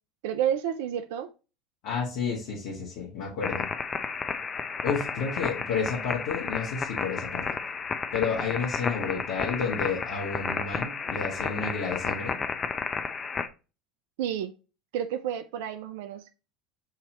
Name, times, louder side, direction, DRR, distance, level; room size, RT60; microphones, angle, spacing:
voice 1, 0.2-1.3 14.2-14.5 14.9-16.3, right 9 dB, 70° right, 0.4 m, -30 dB
voice 2, 1.8-3.7 4.8-7.4 8.1-12.3, left 5 dB, 65° left, 1.6 m, -31 dB
sound 1, 3.4-13.5, left 5 dB, 30° left, 0.6 m, -32 dB
6.5 x 2.9 x 2.9 m
hypercardioid pair, 75°, 0 cm